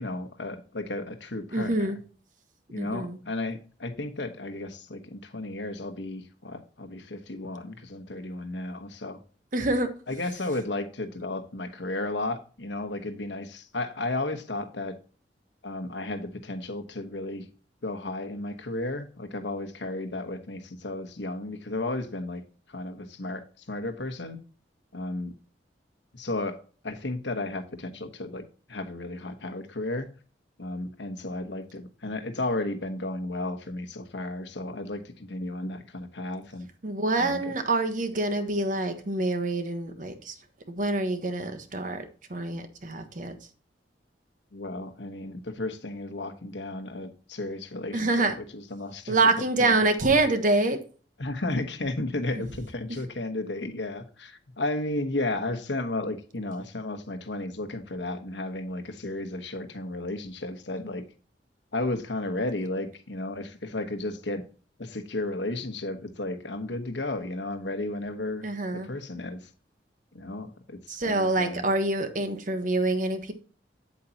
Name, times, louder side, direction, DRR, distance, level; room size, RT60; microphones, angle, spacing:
voice 1, 0.0-1.9 2.7-9.2 10.1-15.0 15.6-17.5 17.8-22.4 22.7-24.4 24.9-25.3 26.1-28.4 28.7-30.1 30.6-36.7 37.2-37.5 44.5-49.2 49.6-49.8 51.2-61.0 61.7-64.5 64.8-68.4 68.7-69.4 70.1-71.6, left 2 dB, 80° left, 1.2 m, -33 dB
voice 2, 1.5-2.0 2.8-3.2 9.5-9.9 36.8-40.3 40.7-42.0 42.3-43.4 47.9-48.4 49.1-50.8 52.9-53.0 68.4-68.9 70.9-73.3, right 2 dB, 45° right, 1.3 m, -26 dB
8.4 x 8.3 x 2.8 m
head